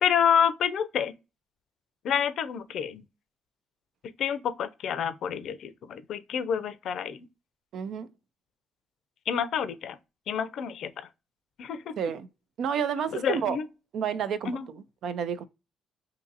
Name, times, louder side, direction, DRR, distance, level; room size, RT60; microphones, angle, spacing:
voice 1, 0.0-1.1 2.0-3.0 4.2-7.3 9.3-10.0 10.3-11.1 11.6-12.0 13.1-13.6 14.4-14.7, left 8 dB, 70° left, 0.4 m, -28 dB
voice 2, 7.7-8.1 12.0-12.3 12.6-13.6 13.9-15.4, right 7 dB, 70° right, 0.4 m, -30 dB
2.7 x 2.6 x 3.9 m
cardioid pair, 90°, 0 cm